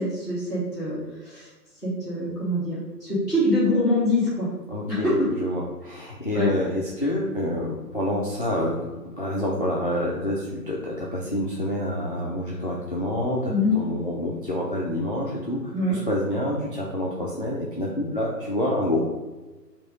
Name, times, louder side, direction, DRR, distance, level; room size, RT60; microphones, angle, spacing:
voice 1, 0.0-1.5 1.8-4.5 4.9-5.3 6.3-6.5 13.5-13.7 15.7-16.0, left 1 dB, ahead, -18 dB, 1.3 m, -24 dB
voice 2, 4.7-5.1 5.4-19.0, left 1 dB, 35° left, -5 dB, 0.5 m, -27 dB
4.5 x 2.9 x 3.9 m, 1.2 s
figure-of-eight pair, 145°, 49 cm